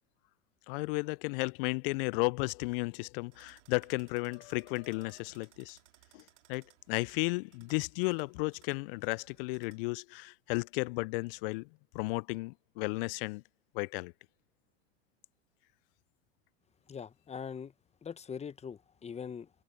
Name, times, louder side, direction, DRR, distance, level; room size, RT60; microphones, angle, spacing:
voice 1, 0.7-5.8 6.1-6.2 6.5-11.7 11.9-13.4 13.7-14.1, left 27 dB, 55° left, 0.4 m, -34 dB
sound 1, 3.3-9.9, right 15 dB, 75° right, 3.7 m, -64 dB
voice 2, 16.9-17.7 18.0-19.5, left 7 dB, 20° left, 1.1 m, -42 dB
hypercardioid pair, 105°, 36 cm